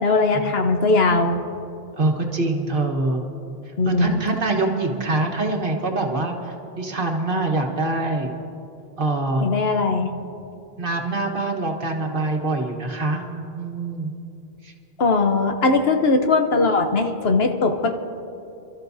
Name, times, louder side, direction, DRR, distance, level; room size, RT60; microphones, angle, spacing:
voice 1, 0.0-1.4 3.8-4.2 9.4-10.1 15.0-17.9, left 3 dB, 75° left, 5 dB, 1.2 m, -19 dB
voice 2, 2.0-3.2 3.8-8.3 9.0-9.4 10.8-13.2 13.6-14.1 14.6-14.7, right 2 dB, 60° right, 1 dB, 1.6 m, -24 dB
28.5 x 13.0 x 2.7 m, 2.9 s
omnidirectional pair, 1.0 m